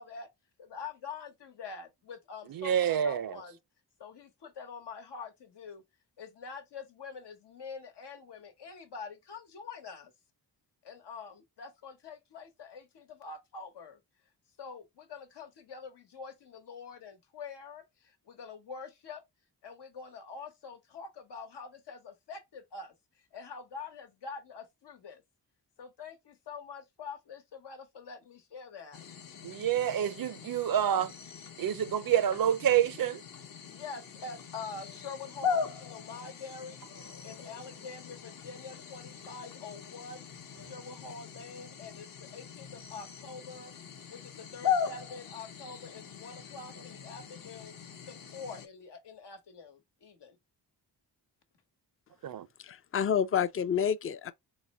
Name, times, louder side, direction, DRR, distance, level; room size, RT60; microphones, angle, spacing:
voice 1, 0.6-3.6 4.0-5.8 6.2-10.1 10.8-14.0 14.6-19.2 19.6-22.9 23.3-25.2 25.8-29.0 33.7-36.9 37.2-40.2 40.6-43.7 44.1-47.8 48.1-50.4, left 4 dB, 80° left, 1.1 m, -45 dB
voice 2, 2.5-3.4 29.4-31.1 31.6-33.2 52.2-52.5, right 10 dB, 60° right, 0.5 m, -28 dB
sound 1, 28.9-48.7, left 7 dB, 55° left, 0.8 m, -40 dB
voice 3, 52.6-54.3, left 8 dB, 35° left, 0.5 m, -29 dB
4.0 x 2.1 x 4.1 m
cardioid pair, 75°, 40 cm